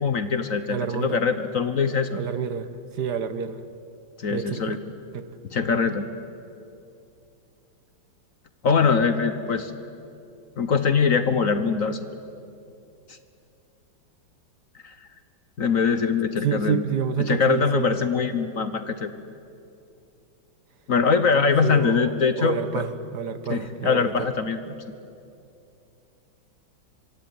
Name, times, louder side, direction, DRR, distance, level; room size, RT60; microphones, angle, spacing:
voice 1, 0.0-2.2 4.2-4.8 5.5-6.0 8.6-9.7 10.6-12.0 14.8-14.9 15.6-16.8 17.2-19.1 20.9-22.8 23.5-24.6, left 5 dB, 50° left, 11 dB, 1.3 m, -23 dB
voice 2, 0.7-1.2 2.1-2.7 2.9-3.7 4.3-4.8 5.1-5.2 16.4-17.9 21.6-24.1 24.7-24.8, right 7 dB, 60° right, 12 dB, 1.6 m, -28 dB
24.5 x 24.5 x 9.6 m, 2.6 s
omnidirectional pair, 2.1 m